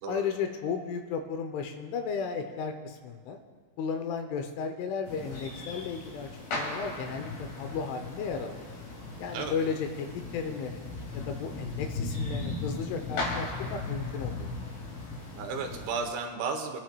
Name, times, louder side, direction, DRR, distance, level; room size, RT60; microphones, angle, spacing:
voice 1, 0.1-3.4 3.8-8.7 9.2-10.8 11.1-14.5, left 6 dB, 80° left, 6 dB, 3.1 m, -34 dB
sound 1, 5.1-16.1, left 3 dB, 55° left, 3.5 m, -37 dB
voice 2, 15.3-16.8, right 5 dB, 75° right, 3 dB, 3.2 m, -33 dB
24.5 x 10.5 x 2.3 m, 1.5 s
omnidirectional pair, 5.7 m